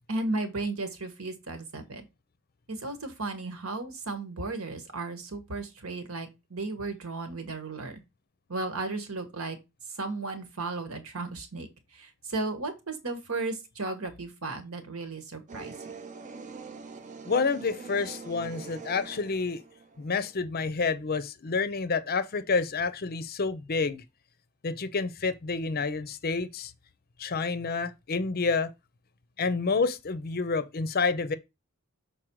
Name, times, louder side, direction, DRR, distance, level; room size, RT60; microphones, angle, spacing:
voice 1, 0.1-2.0 2.7-8.0 8.5-9.6 10.0-11.7 11.9-15.7, right 3 dB, 70° right, 1.4 m, -35 dB
sound 1, 15.5-20.4, right 4 dB, 35° right, 0.6 m, -44 dB
voice 2, 17.3-19.6 20.0-24.0 24.6-26.7 27.2-28.7 29.4-31.4, left 4 dB, 45° left, 0.6 m, -29 dB
6.3 x 4.2 x 4.6 m
head